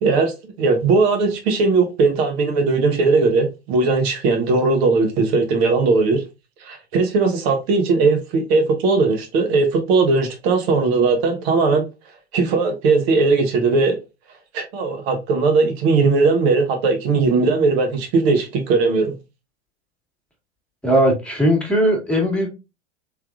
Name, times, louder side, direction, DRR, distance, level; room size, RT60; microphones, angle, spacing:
voice 1, 0.0-6.2 6.6-11.9 12.3-14.0 14.5-19.1, right 4 dB, 65° right, 1.2 m, -18 dB
voice 2, 20.8-22.5, equal, 5° left, 1.5 m, -18 dB
3.3 x 3.3 x 2.4 m
hypercardioid pair, 95°, 35 cm